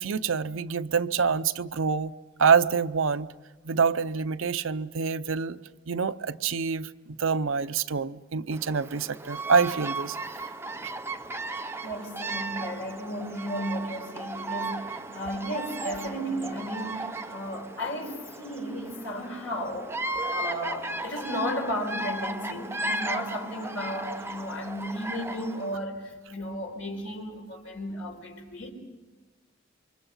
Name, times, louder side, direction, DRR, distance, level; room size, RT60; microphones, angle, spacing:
voice 1, 0.0-2.1 2.4-3.3 3.6-5.6 5.9-10.2, right 5 dB, 70° right, 0.7 m, -26 dB
Bird vocalization bird call bird song, 8.5-25.8, right 2 dB, 10° right, 0.7 m, -35 dB
voice 2, 11.8-20.0 20.3-28.7, equal, 70° left, 4.9 m, -34 dB
28.0 x 24.5 x 5.6 m
head